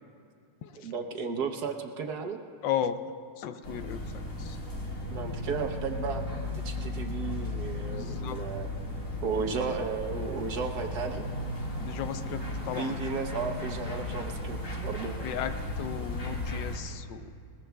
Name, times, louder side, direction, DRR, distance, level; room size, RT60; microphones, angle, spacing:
voice 1, 0.8-2.4 5.1-6.3 6.6-8.7 9.2-11.2 12.8-15.1, right 5 dB, 65° right, 4 dB, 1.3 m, -34 dB
voice 2, 2.6-3.0 3.4-4.6 7.9-8.4 11.8-13.0 15.2-17.3, left 9 dB, 80° left, 10 dB, 1.3 m, -35 dB
sound 1, 3.6-16.8, left 1 dB, 45° left, 2.1 m, -35 dB
21.0 x 20.0 x 2.3 m, 2.2 s
omnidirectional pair, 2.0 m